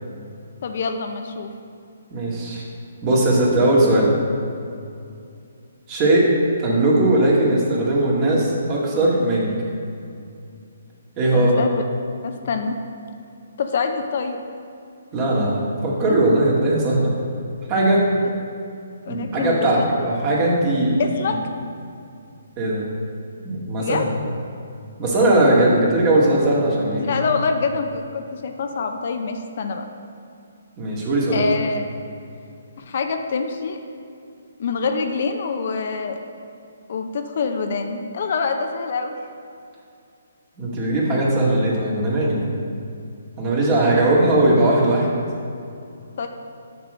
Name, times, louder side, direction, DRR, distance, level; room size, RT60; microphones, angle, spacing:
voice 1, 0.6-1.5 11.3-11.7 12.2-12.8 13.6-14.4 19.1-19.7 21.0-21.4 23.8-24.0 27.0-29.8 31.3-31.9 32.8-33.8 34.6-36.2 36.9-39.1 46.2-46.3, left 5 dB, 55° left, 5 dB, 0.6 m, -25 dB
voice 2, 2.1-2.6 3.0-4.1 5.9-9.5 11.2-11.7 15.1-17.1 17.7-18.1 19.1-21.0 21.3-21.4 22.6-22.9 23.4-24.0 25.0-27.3 30.8-31.4 40.6-42.5 43.4-45.1, right 1 dB, 30° right, -4 dB, 2.0 m, -19 dB
6.7 x 4.7 x 6.4 m, 2.5 s
figure-of-eight pair, 135°, 0 cm